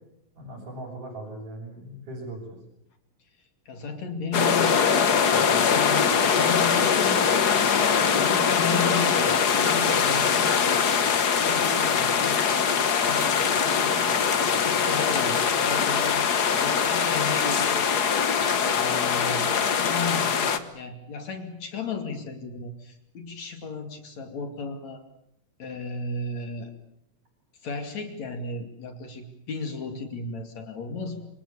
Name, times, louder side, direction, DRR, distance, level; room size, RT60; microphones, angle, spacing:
voice 1, 0.3-2.6, right 1 dB, 55° right, -4 dB, 8.0 m, -39 dB
voice 2, 3.7-7.5 8.2-10.9 11.4-12.7 13.0-14.2 14.6-18.1 18.8-19.4 19.7-25.0 25.6-26.7 27.6-31.3, left 4 dB, 55° left, 6 dB, 3.6 m, -34 dB
sound 1, 4.3-20.6, left 6 dB, 90° left, 0.8 m, -22 dB
27.5 x 26.5 x 7.2 m, 0.74 s
omnidirectional pair, 4.1 m